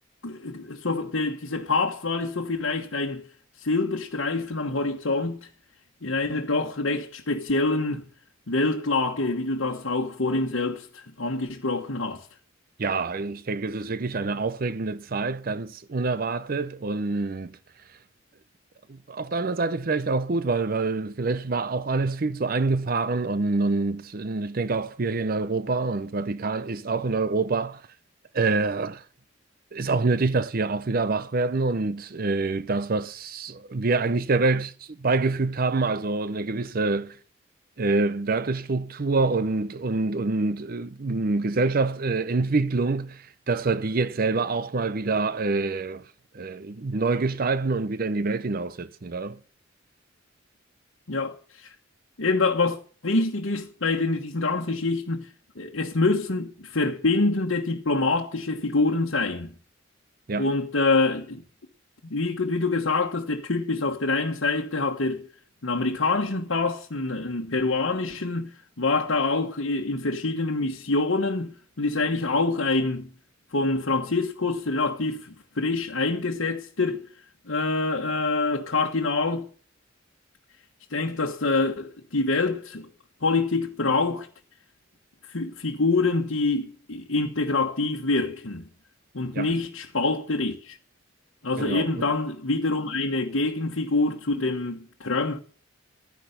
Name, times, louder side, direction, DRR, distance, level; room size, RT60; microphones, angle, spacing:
voice 1, 0.2-3.2 3.6-5.5 6.0-8.0 8.5-12.3 51.1-51.7 52.2-52.8 53.0-55.3 55.6-59.5 60.4-61.4 62.0-65.2 65.6-68.5 68.8-73.1 73.5-77.1 77.5-79.5 80.9-82.9 83.2-84.3 85.3-88.7 89.1-90.8 91.4-95.4, left 3 dB, 80° left, 1.3 m, -26 dB
voice 2, 12.8-17.6 18.9-27.8 28.3-29.0 29.7-37.2 37.8-46.0 46.3-49.4 60.3-60.5 89.3-89.5 91.6-92.1, right 3 dB, 45° right, 0.6 m, -26 dB
13.0 x 10.0 x 6.6 m
head